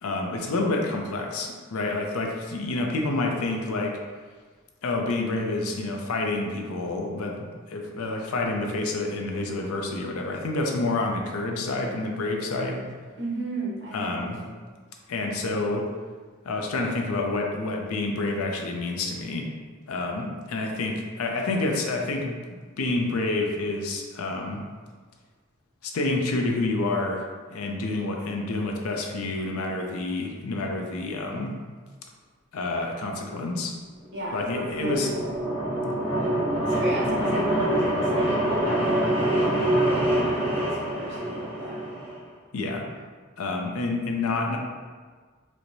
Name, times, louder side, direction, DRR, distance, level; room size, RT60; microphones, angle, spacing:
voice 1, 0.0-4.0 4.8-12.8 13.9-14.4 15.1-15.9 16.4-19.4 19.9-22.4 22.8-24.6 25.8-27.2 27.5-31.5 32.5-33.7 34.3-35.1 42.5-42.8 43.4-44.6, left 2 dB, 85° left, 1 dB, 0.5 m, -28 dB
voice 2, 13.2-14.1 14.4-14.6 34.1-35.1 36.7-41.8, right 1 dB, 55° right, -5 dB, 0.9 m, -34 dB
sound 1, 34.3-42.2, right 1 dB, 10° right, 1.0 m, -25 dB
4.5 x 2.1 x 2.6 m, 1.5 s
head